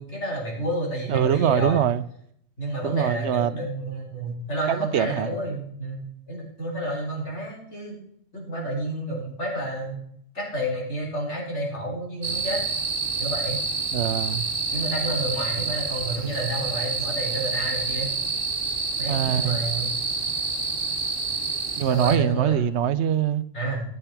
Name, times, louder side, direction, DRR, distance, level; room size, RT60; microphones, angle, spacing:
voice 1, 0.0-1.8 2.6-8.0 8.3-10.0 10.3-12.6 13.2-13.6 14.7-18.1 19.0-20.0 21.9-22.6 23.5-23.8, right 1 dB, 90° left, 4.0 m, -30 dB
voice 2, 1.1-2.0 2.8-3.5 4.7-5.3 13.9-14.5 19.1-19.6 21.8-23.4, right 9 dB, 80° right, 0.9 m, -23 dB
sound 1, 12.2-22.2, right 4 dB, 50° right, 1.4 m, -28 dB
13.5 x 6.9 x 5.8 m
omnidirectional pair, 1.1 m